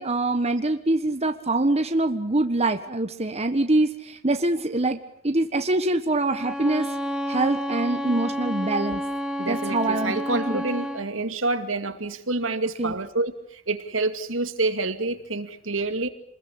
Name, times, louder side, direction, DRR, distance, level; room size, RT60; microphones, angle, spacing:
voice 1, 0.0-6.9 7.3-9.0 9.5-10.6 12.8-12.9, right 2 dB, 30° right, 7 dB, 1.4 m, -24 dB
Bowed string instrument, 6.2-11.1, equal, 5° right, 1.9 m, -30 dB
voice 2, 9.4-16.1, right 3 dB, 70° right, 9 dB, 2.4 m, -28 dB
28.0 x 21.0 x 8.6 m, 0.66 s
head